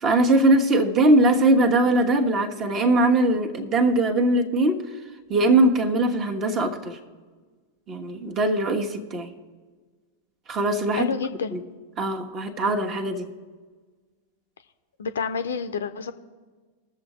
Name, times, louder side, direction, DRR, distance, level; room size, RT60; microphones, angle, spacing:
voice 1, 0.0-4.8 5.3-7.0 7.9-9.3 10.5-11.1 11.5-11.6 12.0-13.3, right 2 dB, 30° right, 5 dB, 1.3 m, -21 dB
voice 2, 10.9-11.6 15.0-16.1, left 6 dB, 65° left, 11 dB, 0.6 m, -29 dB
21.5 x 7.2 x 3.1 m, 1.4 s
figure-of-eight pair, 90°, 0 cm